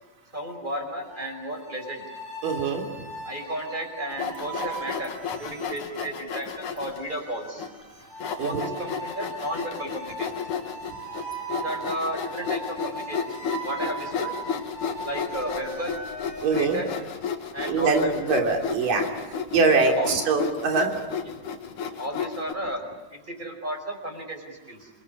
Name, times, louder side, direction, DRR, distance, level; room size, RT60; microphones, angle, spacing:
voice 1, 0.3-2.0 3.2-5.1 5.4-7.7 8.4-10.3 10.6-10.7 11.5-14.3 15.0-15.9 16.5-16.9 17.5-18.3 19.8-20.2 21.2-21.4 22.0-22.8 23.1-24.9, right 1 dB, 15° right, 4 dB, 4.8 m, -34 dB
sound 1, 1.1-17.1, right 3 dB, 55° right, 8.4 m, -39 dB
voice 2, 2.4-2.9 8.4-8.6 16.4-16.8 17.7-20.9, right 4 dB, 90° right, 3 dB, 4.7 m, -23 dB
Sawing, 4.1-7.0 7.6-7.7 8.2-22.5, left 6 dB, 65° left, 3.3 m, -33 dB
28.0 x 21.5 x 9.9 m, 1.1 s
omnidirectional pair, 3.8 m